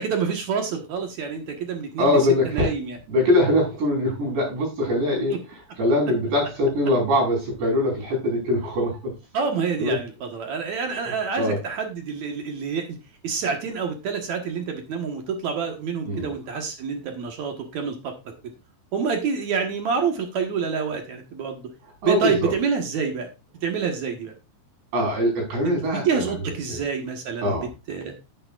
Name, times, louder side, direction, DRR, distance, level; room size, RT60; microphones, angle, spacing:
voice 1, 0.0-2.1 2.4-3.0 9.3-13.0 13.2-18.1 18.9-21.7 22.0-23.3 23.6-24.3 25.6-27.6 27.9-28.1, right 6 dB, 60° right, 4 dB, 2.2 m, -27 dB
voice 2, 2.0-2.7 3.1-9.1 9.8-10.0 10.9-11.0 11.4-11.6 16.1-16.3 22.0-22.5 24.9-26.3 26.7-26.8 27.4-27.7, left 1 dB, 90° right, -1 dB, 7.1 m, -22 dB
11.0 x 9.6 x 2.4 m, 0.27 s
omnidirectional pair, 4.8 m